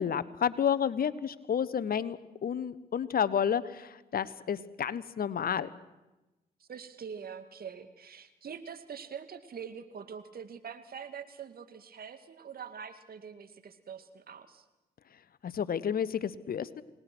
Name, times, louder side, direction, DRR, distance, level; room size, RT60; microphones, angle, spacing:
voice 1, 0.0-5.7 15.4-16.8, left 8 dB, 55° left, 17 dB, 1.2 m, -31 dB
voice 2, 6.6-14.6, right 7 dB, 55° right, 9 dB, 2.2 m, -44 dB
28.5 x 19.5 x 6.2 m, 1.0 s
hypercardioid pair, 50°, 19 cm